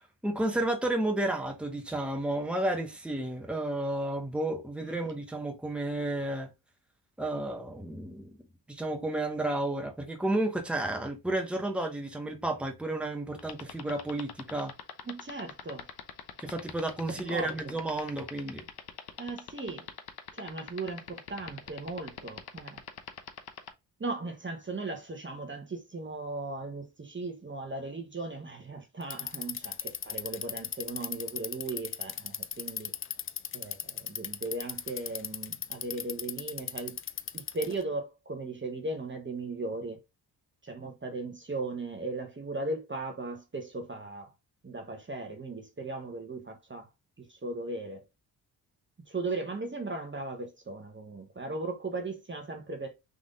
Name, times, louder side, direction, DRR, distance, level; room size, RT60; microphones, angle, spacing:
voice 1, 0.2-6.5 7.2-8.4 8.7-14.7 16.4-18.6, right 1 dB, 5° right, 1.3 m, -32 dB
voice 2, 4.8-5.1 15.1-15.9 17.3-17.7 19.2-19.9 20.3-22.8 24.0-33.0 33.5-37.0 37.3-40.0 40.6-44.3 44.6-46.9 47.2-48.0 49.1-52.9, right 2 dB, 25° right, 1.2 m, -37 dB
sound 1, 13.4-23.7, left 9 dB, 60° left, 0.9 m, -41 dB
Bicycle, 29.0-37.8, left 8 dB, 30° left, 0.4 m, -36 dB
4.0 x 3.4 x 3.7 m
cardioid pair, 65°, 43 cm